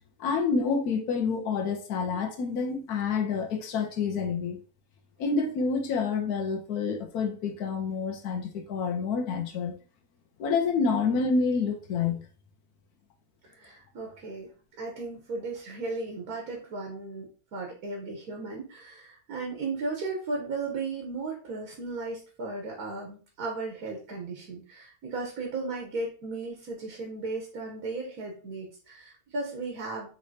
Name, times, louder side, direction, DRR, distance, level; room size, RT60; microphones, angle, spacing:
voice 1, 0.2-4.6 5.2-9.7 10.4-12.3, left 5 dB, 85° left, 1.3 m, -28 dB
voice 2, 13.5-14.5 14.8-30.1, right 3 dB, 80° right, 1.5 m, -35 dB
5.3 x 3.2 x 2.8 m
omnidirectional pair, 1.6 m